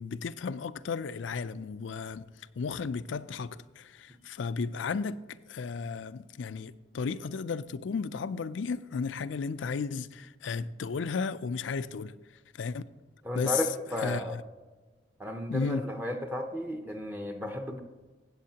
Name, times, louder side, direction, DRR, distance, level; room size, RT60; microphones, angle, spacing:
voice 1, 0.0-2.3 2.6-12.2 12.5-12.8 13.3-13.7 14.0-14.4 15.5-15.9, left 5 dB, 90° left, 0.4 m, -34 dB
voice 2, 13.2-14.4 15.2-17.8, left 1 dB, 10° right, 0.7 m, -33 dB
16.0 x 8.2 x 2.9 m
head